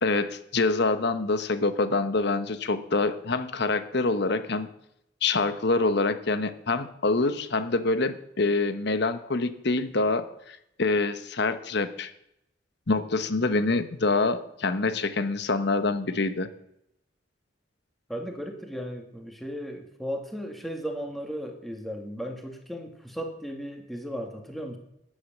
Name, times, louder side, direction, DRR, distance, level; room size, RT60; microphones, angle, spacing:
voice 1, 0.0-4.7 5.2-12.1 12.9-16.5, left 3 dB, 60° left, 11 dB, 1.1 m, -26 dB
voice 2, 18.1-24.8, equal, ahead, 3 dB, 2.0 m, -36 dB
13.5 x 10.0 x 6.7 m, 0.80 s
head